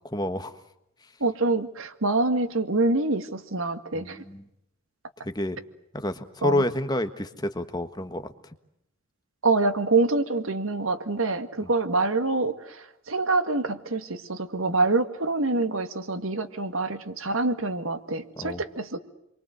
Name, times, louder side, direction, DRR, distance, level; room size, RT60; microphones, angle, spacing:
voice 1, 0.1-0.5 3.9-4.4 5.2-5.6 5.9-8.2 11.6-11.7 18.4-18.6, left 1 dB, 20° left, 9 dB, 1.4 m, -29 dB
voice 2, 1.2-4.2 6.4-6.6 9.4-19.0, right 3 dB, 75° right, 9 dB, 2.0 m, -26 dB
29.0 x 23.5 x 8.0 m, 0.81 s
head